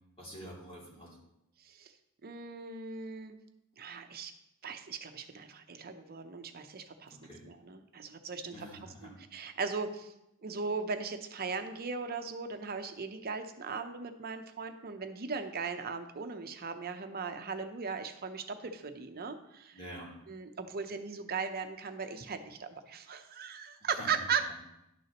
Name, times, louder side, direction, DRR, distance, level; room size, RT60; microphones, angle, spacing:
voice 1, 0.2-1.2 7.1-7.4 8.5-9.1 19.7-20.1 23.8-24.2 24.5-24.6, equal, 25° left, -5 dB, 2.6 m, -47 dB
voice 2, 1.6-1.9 2.2-3.4 3.8-4.3 4.6-7.2 7.5-8.7 9.3-10.1 10.4-19.8 20.3-24.5, right 5 dB, 45° right, 7 dB, 0.7 m, -38 dB
11.5 x 6.1 x 3.0 m, 0.86 s
head